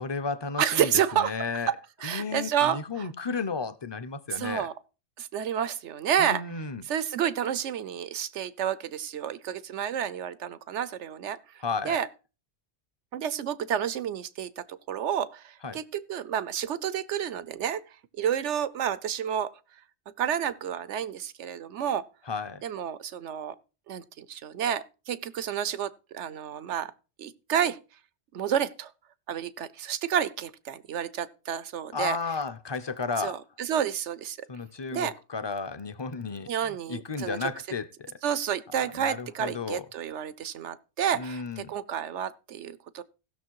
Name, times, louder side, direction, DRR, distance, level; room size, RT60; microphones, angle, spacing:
voice 1, 0.0-1.7 2.0-4.7 6.2-6.8 11.6-12.0 15.6-15.8 22.3-22.6 31.9-33.4 34.5-38.2 38.7-39.9 41.1-41.7, left 4 dB, 30° left, 0.6 m, -33 dB
voice 2, 0.6-1.3 1.7-1.8 2.0-3.1 4.3-4.7 5.2-6.4 6.9-12.1 13.1-17.9 18.2-19.5 20.2-22.0 22.6-23.5 23.9-26.9 27.2-27.8 28.3-28.9 29.3-32.2 33.2-34.5 34.9-35.1 36.5-37.4 38.2-43.0, right 9 dB, 90° right, 1.1 m, -30 dB
15.5 x 6.6 x 4.7 m
omnidirectional pair, 1.2 m